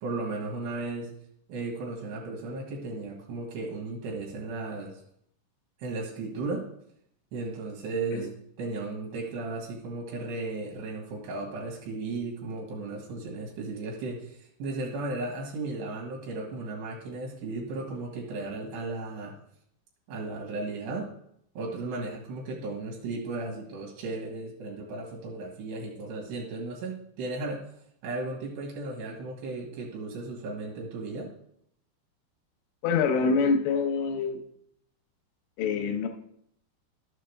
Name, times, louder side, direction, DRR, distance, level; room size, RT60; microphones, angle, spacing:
voice 1, 0.0-1.1 1.5-5.0 5.8-6.7 7.3-8.3 8.6-19.4 20.1-21.1 21.5-27.7 28.0-31.3, right 3 dB, 70° right, -2 dB, 3.2 m, -35 dB
voice 2, 32.8-34.4 35.6-36.1, left 5 dB, 90° left, 4 dB, 3.3 m, -25 dB
12.0 x 7.4 x 3.4 m, 0.71 s
omnidirectional pair, 5.4 m